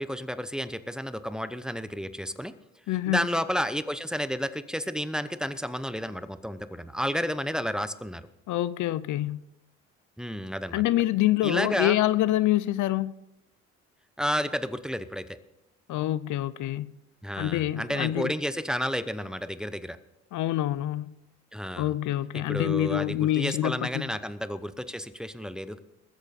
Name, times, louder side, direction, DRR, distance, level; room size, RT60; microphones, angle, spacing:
voice 1, 0.0-2.5 3.1-8.2 10.2-10.8 11.4-12.0 14.2-15.4 17.2-20.0 21.5-21.9 22.3-25.8, equal, ahead, 0.8 m, -31 dB
voice 2, 2.9-3.3 8.5-9.4 10.7-13.1 15.9-16.9 17.4-18.3 20.3-21.1 21.8-24.1, left 14 dB, 80° left, 0.6 m, -26 dB
20.5 x 8.0 x 4.2 m
cardioid pair, 90°, 30 cm